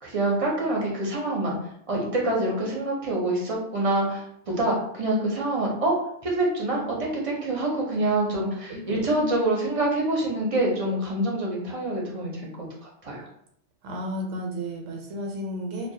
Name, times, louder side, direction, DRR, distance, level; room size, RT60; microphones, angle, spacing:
voice 1, 0.0-1.6 1.9-5.9 6.2-12.4 12.8-13.3, right 1 dB, 45° right, -3 dB, 0.4 m, -26 dB
voice 2, 8.7-9.3 13.8-15.9, equal, 85° right, 1 dB, 0.9 m, -33 dB
2.3 x 2.1 x 2.7 m, 0.70 s
omnidirectional pair, 1.2 m